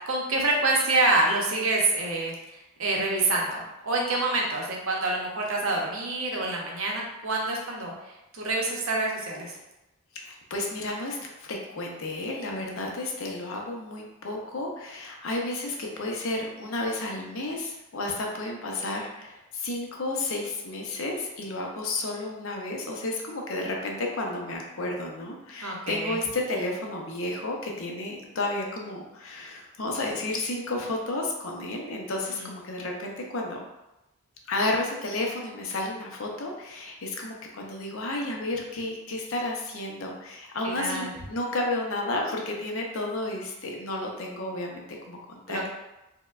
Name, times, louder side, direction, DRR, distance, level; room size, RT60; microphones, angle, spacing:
voice 1, 0.1-9.5 12.8-12.9 25.6-26.2 32.3-32.5 40.6-41.1 45.5-45.7, right 2 dB, 65° right, -1 dB, 0.7 m, -27 dB
voice 2, 10.1-33.6 34.5-45.7, left 2 dB, 65° left, 0 dB, 0.6 m, -32 dB
4.4 x 2.1 x 2.4 m, 0.97 s
head